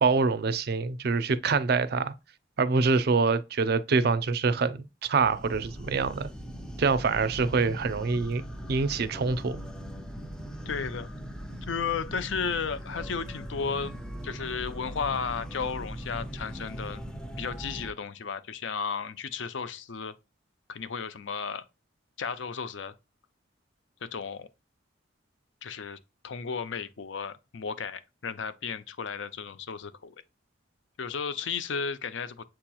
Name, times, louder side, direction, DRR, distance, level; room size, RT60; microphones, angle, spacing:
voice 1, 0.0-2.1 2.6-6.3 6.8-8.4 8.7-9.6, right 4 dB, 55° right, 0.4 m, -25 dB
sound 1, 5.2-17.9, equal, 5° left, 0.4 m, -40 dB
voice 2, 10.7-11.1 11.6-13.9 14.2-17.1 17.4-20.1 20.7-21.6 22.2-22.9 24.0-24.5 25.6-26.0 26.2-30.1 31.0-32.4, left 5 dB, 75° left, 0.5 m, -34 dB
7.4 x 2.9 x 2.3 m
head